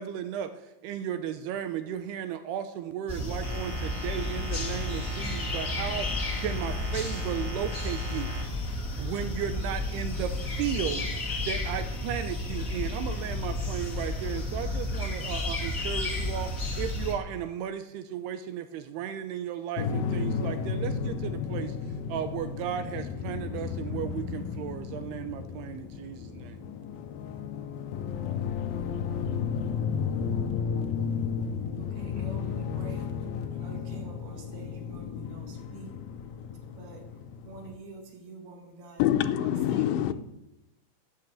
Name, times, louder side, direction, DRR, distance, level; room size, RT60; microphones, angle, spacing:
voice 1, 0.0-8.3 9.0-26.6, right 9 dB, 80° right, 2.5 m, -35 dB
sound 1, 3.1-17.1, left 2 dB, 30° left, 1.7 m, -32 dB
sound 2, 3.4-8.4, right 1 dB, 30° right, 5.1 m, -41 dB
sound 3, 19.8-37.8, left 6 dB, 70° left, 2.4 m, -33 dB
voice 2, 31.8-33.1 33.5-35.9 36.7-37.0 37.5-39.0 39.4-40.1, right 3 dB, 60° right, 4.0 m, -46 dB
voice 3, 39.0-40.1, left 12 dB, 90° left, 3.0 m, -25 dB
13.5 x 8.8 x 7.6 m
omnidirectional pair, 5.3 m